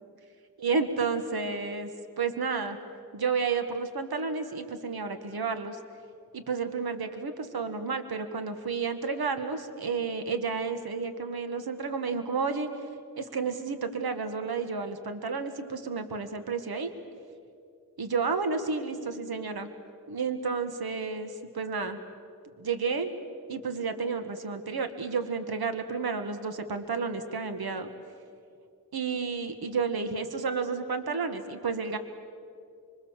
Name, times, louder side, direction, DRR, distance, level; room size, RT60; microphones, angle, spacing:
voice 1, 0.6-1.9 2.2-2.8 3.1-5.8 6.3-12.7 13.2-16.9 18.0-19.7 20.1-22.0 22.6-23.1 23.5-27.9 28.9-32.0, right 5 dB, 70° right, 8 dB, 1.6 m, -31 dB
25.5 x 24.5 x 7.3 m, 2.3 s
wide cardioid pair, 115°, 38 cm